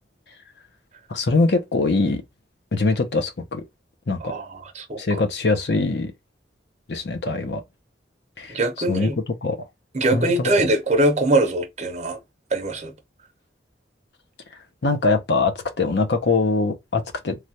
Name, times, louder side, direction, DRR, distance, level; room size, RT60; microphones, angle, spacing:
voice 1, 1.1-2.2 2.7-3.6 4.1-4.3 5.0-6.1 6.9-7.6 8.4-8.6 8.9-9.1 9.4-9.6 10.1-10.5 14.8-17.3, left 3 dB, 70° left, 0.7 m, -22 dB
voice 2, 4.2-5.0 8.5-9.1 9.9-12.2 12.5-12.9, right 1 dB, 40° right, 0.8 m, -22 dB
3.2 x 2.4 x 2.8 m
head